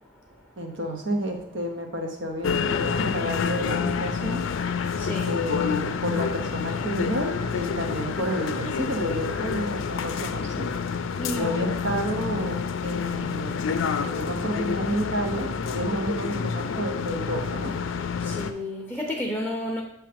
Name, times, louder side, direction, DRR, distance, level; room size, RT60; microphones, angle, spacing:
voice 1, 0.6-4.4 5.3-10.7 11.3-13.7 14.0-17.7, equal, 70° right, 3 dB, 1.0 m, -30 dB
sound 1, 2.4-18.5, left 6 dB, 85° left, 0.4 m, -28 dB
voice 2, 5.0-5.3 11.2-11.6 18.3-19.8, left 1 dB, ahead, -2 dB, 0.7 m, -31 dB
7.8 x 3.2 x 5.1 m, 0.79 s
head